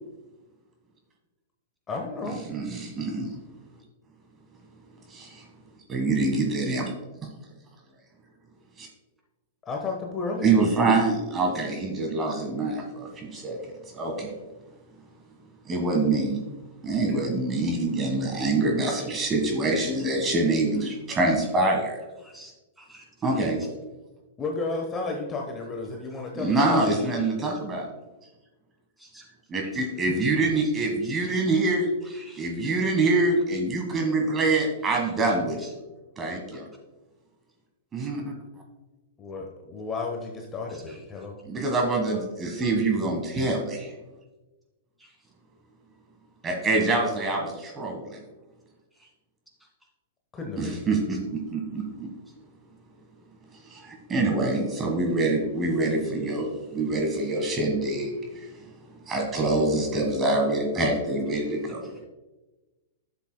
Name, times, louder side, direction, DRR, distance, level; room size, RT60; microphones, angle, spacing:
voice 1, 1.9-2.4 9.7-11.0 24.4-26.9 30.4-30.6 39.2-41.4 50.3-50.8, left 3 dB, 20° left, 2 dB, 1.0 m, -33 dB
voice 2, 2.5-3.3 5.1-5.4 5.9-6.9 8.8-8.9 10.4-13.6 13.9-14.3 15.6-16.4 16.8-22.0 23.2-23.6 26.3-27.9 29.5-31.9 32.4-35.7 36.2-36.6 37.9-38.3 41.5-43.9 46.4-48.2 50.6-52.1 53.7-58.5 59.1-61.9, right 2 dB, 20° right, 1 dB, 1.5 m, -25 dB
voice 3, 22.2-23.7 26.4-27.3 29.0-29.3 29.6-29.7 31.0-31.7 32.1-32.5 35.3-35.7 36.5-36.6 40.7-41.0 41.7-41.8 45.0-45.2 49.0-49.1 51.1-51.2, right 1 dB, 5° right, -1 dB, 2.4 m, -51 dB
11.5 x 7.4 x 2.2 m, 1.1 s
hypercardioid pair, 105°, 0 cm